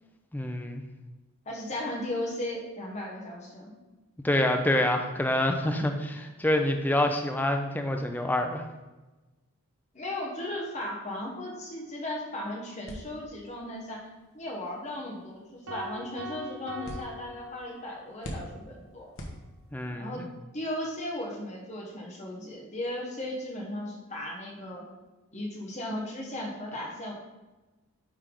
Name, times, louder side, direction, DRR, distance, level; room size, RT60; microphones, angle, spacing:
voice 1, 0.3-0.8 4.2-8.6 19.7-20.3, left 1 dB, 10° left, 4 dB, 0.4 m, -27 dB
voice 2, 1.5-3.7 9.9-14.1 14.3-19.1 19.9-20.2 20.5-24.8 25.3-27.1, left 1 dB, 30° left, -2 dB, 1.0 m, -36 dB
sound 1, 12.9-20.0, equal, 60° left, 1.1 m, -46 dB
sound 2, 15.7-18.1, equal, 75° right, 0.7 m, -42 dB
9.7 x 3.4 x 3.7 m, 1.1 s
head